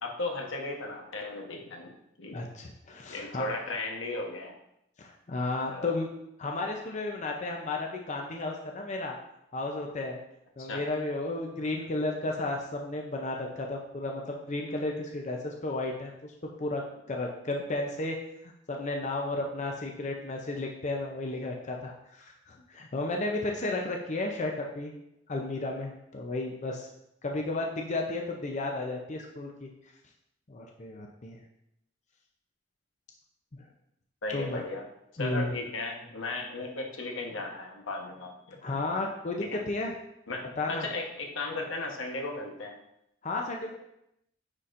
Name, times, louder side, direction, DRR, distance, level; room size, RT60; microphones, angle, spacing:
voice 1, 0.0-1.9 2.2-2.4 3.1-4.5 5.7-5.9 10.6-10.8 34.2-34.9 35.2-38.8 39.4-39.6 40.3-42.8, left 2 dB, 80° left, 2 dB, 1.0 m, -36 dB
voice 2, 2.3-3.5 5.0-6.1 6.4-9.2 9.5-10.2 10.6-16.1 16.6-16.8 17.1-18.2 18.7-24.9 25.3-26.9 27.2-29.7 30.5-31.4 34.3-34.6 35.2-35.5 38.6-39.9 40.6-40.9 43.2-43.7, left 2 dB, 40° left, 1 dB, 0.6 m, -33 dB
9.6 x 4.2 x 2.5 m, 0.82 s
head